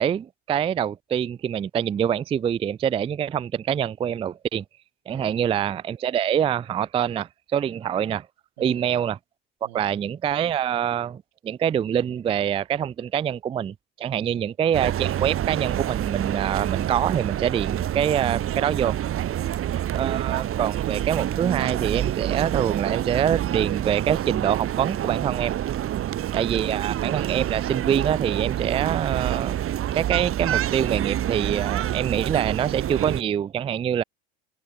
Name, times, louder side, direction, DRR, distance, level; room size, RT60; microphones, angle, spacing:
voice 1, 0.0-4.6 5.1-8.3 8.6-9.2 9.6-19.0 19.9-25.6 26.3-29.6 29.9-34.0, right 9 dB, 20° right, 0.3 m, -25 dB
voice 2, 5.1-5.5 8.6-8.9 9.6-9.9 14.2-14.5, right 20 dB, 80° right, 2.7 m, -47 dB
sound 1, 14.7-33.2, right 11 dB, 45° right, 1.7 m, -27 dB
hypercardioid pair, 75°, 31 cm